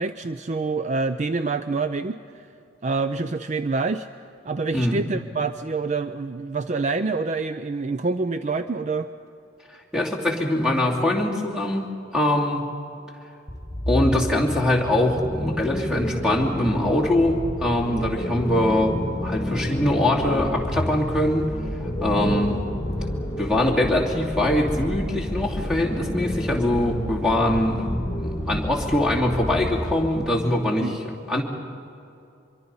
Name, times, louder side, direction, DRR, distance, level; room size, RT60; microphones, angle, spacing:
voice 1, 0.0-2.5 2.8-4.1 4.4-9.1 22.2-22.3 30.8-31.0, right 3 dB, 35° right, 11 dB, 0.4 m, -26 dB
voice 2, 9.9-12.6 13.9-21.5 22.0-22.6 23.4-27.9 28.1-31.0 31.3-31.4, left 1 dB, 5° right, 0 dB, 2.7 m, -23 dB
sound 1, 13.5-30.3, left 1 dB, 20° left, 1.9 m, -29 dB
25.0 x 23.5 x 5.6 m, 2.6 s
head